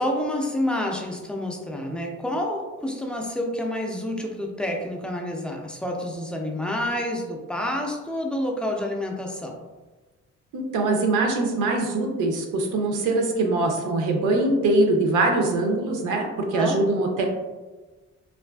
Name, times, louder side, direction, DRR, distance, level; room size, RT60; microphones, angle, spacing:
voice 1, 0.0-9.5 16.5-16.8, left 1 dB, 5° left, 0 dB, 0.3 m, -28 dB
voice 2, 10.5-17.3, right 2 dB, 90° right, 2 dB, 0.5 m, -23 dB
2.4 x 2.3 x 2.2 m, 1.2 s
cardioid pair, 90°, 30 cm